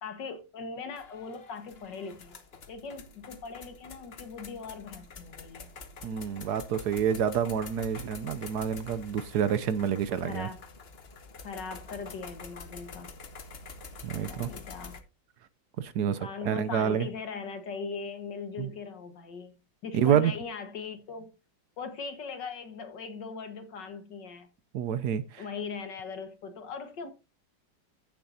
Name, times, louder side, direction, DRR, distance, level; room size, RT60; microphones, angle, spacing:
voice 1, 0.0-2.4 2.7-5.7 10.2-10.6 11.4-13.1 14.2-15.0 16.0-19.6 19.8-21.3 21.8-24.5 25.4-27.1, left 5 dB, 70° left, 2.1 m, -40 dB
sound 1, 0.9-15.0, left 4 dB, 40° left, 1.1 m, -47 dB
voice 2, 6.0-10.5 14.0-14.5 15.8-17.1 18.6-18.7 19.9-20.3 24.7-25.4, right 8 dB, 70° right, 1.1 m, -28 dB
15.0 x 7.1 x 2.7 m
omnidirectional pair, 2.0 m